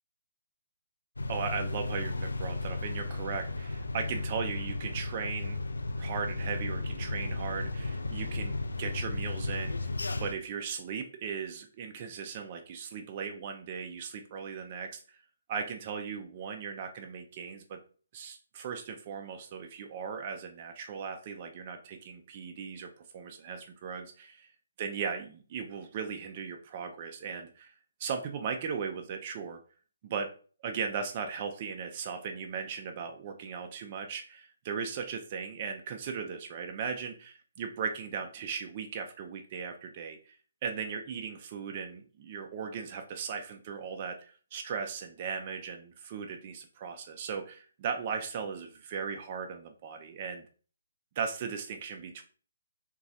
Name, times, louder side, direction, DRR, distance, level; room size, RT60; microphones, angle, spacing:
sound 1, 1.2-10.3, left 2 dB, 75° left, 0.3 m, -34 dB
voice 1, 1.3-5.6 6.0-9.9 10.2-15.2 15.5-17.8 18.1-22.9 23.1-24.5 24.8-27.7 28.0-29.6 30.0-30.3 30.6-40.3 40.6-50.4 51.2-52.2, right 6 dB, 35° right, 4 dB, 0.3 m, -37 dB
3.9 x 2.2 x 2.6 m, 0.40 s
figure-of-eight pair, 140°, 0 cm